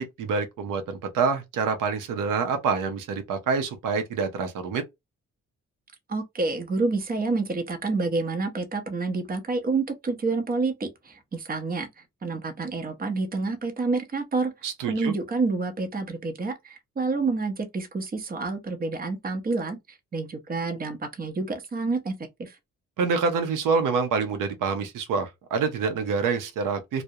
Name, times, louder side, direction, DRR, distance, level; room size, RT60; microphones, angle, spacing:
voice 1, 0.0-4.8 14.6-15.1 23.0-27.0, right 5 dB, 90° right, 0.6 m, -26 dB
voice 2, 6.1-14.5 14.9-22.6, right 3 dB, 30° right, 0.7 m, -28 dB
2.4 x 2.0 x 2.7 m
cardioid pair, 95°, 31 cm